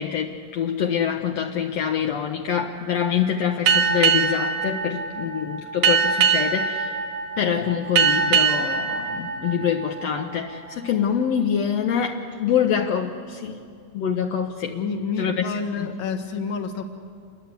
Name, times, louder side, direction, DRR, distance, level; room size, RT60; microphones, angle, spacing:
voice 1, 0.0-7.0 7.4-13.6 13.9-14.8 15.2-15.5 15.8-15.9, left 8 dB, 75° left, 3 dB, 1.5 m, -25 dB
Boat Water vehicle, 3.7-10.7, right 6 dB, 90° right, 3.4 m, -23 dB
voice 2, 14.7-16.8, left 5 dB, 50° left, 5 dB, 1.6 m, -29 dB
28.0 x 22.0 x 8.2 m, 2.2 s
omnidirectional pair, 4.2 m